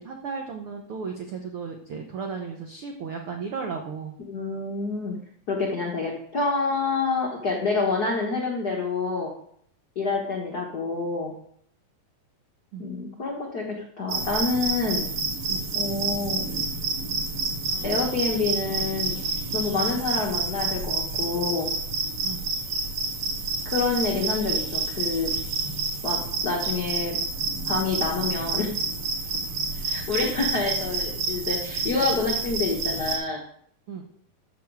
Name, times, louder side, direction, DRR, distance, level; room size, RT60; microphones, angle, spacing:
voice 1, 0.0-4.1 12.7-12.8 15.5-15.6 22.2-22.4 33.9-34.0, right 5 dB, 90° right, 3 dB, 1.2 m, -34 dB
voice 2, 4.3-5.2 5.5-9.3 9.9-11.3 12.8-13.6 14.0-15.0 15.7-16.5 17.8-19.2 19.5-21.7 23.6-25.3 26.0-27.2 27.7-28.7 29.7-33.4, left 3 dB, 80° left, 0 dB, 0.8 m, -27 dB
sound 1, 14.1-33.2, right 4 dB, 60° right, 3.1 m, -29 dB
13.0 x 7.1 x 4.7 m, 0.67 s
omnidirectional pair, 4.0 m